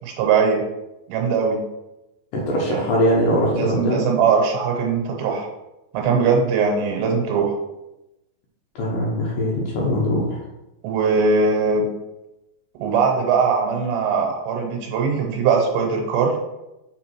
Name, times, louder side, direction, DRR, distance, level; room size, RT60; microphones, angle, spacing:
voice 1, 0.0-0.6 1.1-1.6 2.7-2.8 3.5-5.5 5.9-7.6 10.8-11.9 12.8-16.4, right 5 dB, 80° right, 1 dB, 3.0 m, -20 dB
voice 2, 2.3-4.0 8.8-10.4, equal, 75° left, -3 dB, 2.0 m, -21 dB
7.4 x 3.6 x 4.5 m, 0.94 s
omnidirectional pair, 5.1 m